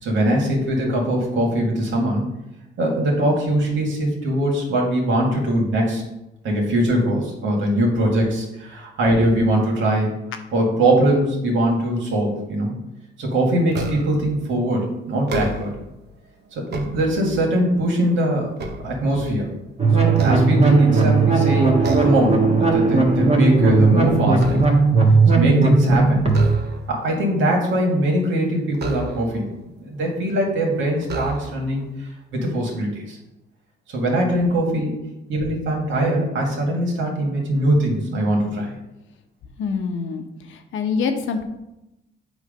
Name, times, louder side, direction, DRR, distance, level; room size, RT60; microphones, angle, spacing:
voice 1, 0.0-2.3 2.8-6.0 6.4-10.2 10.5-12.7 13.2-15.7 16.5-18.5 18.8-19.5 20.0-24.7 25.3-26.2 26.9-29.5 29.8-33.2 33.9-34.9 35.3-38.7, right 1 dB, 75° right, -1 dB, 2.2 m, -21 dB
sound 1, 13.7-14.3 15.1-15.9 16.5-17.6 18.1-19.6 20.1-21.1 21.8-22.3 22.7-23.0 23.3-25.0 26.3-27.1 28.7-29.5 30.3-30.4 31.0-31.8, right 3 dB, 55° right, 1.1 m, -32 dB
sound 2, 19.8-26.5, right 4 dB, 30° right, 1.6 m, -17 dB
voice 2, 39.6-41.4, left 5 dB, 80° left, 6 dB, 1.0 m, -25 dB
8.3 x 3.2 x 5.2 m, 0.90 s
cardioid pair, 90°, 20 cm